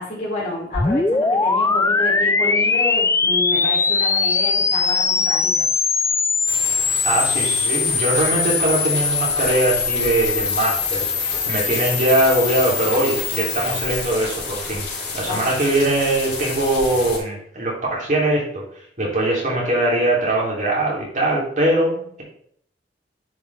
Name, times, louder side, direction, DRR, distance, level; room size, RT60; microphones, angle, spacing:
voice 1, 0.0-5.7 15.3-15.5, left 2 dB, 45° left, -7 dB, 3.4 m, -29 dB
sound 1, 0.7-14.1, left 4 dB, 15° left, 0.4 m, -21 dB
sound 2, 6.5-17.2, left 4 dB, 75° left, 3.3 m, -31 dB
voice 2, 7.0-14.9 15.1-18.6 19.0-22.2, right 1 dB, 45° right, -4 dB, 3.2 m, -21 dB
9.3 x 5.6 x 3.5 m, 0.64 s
head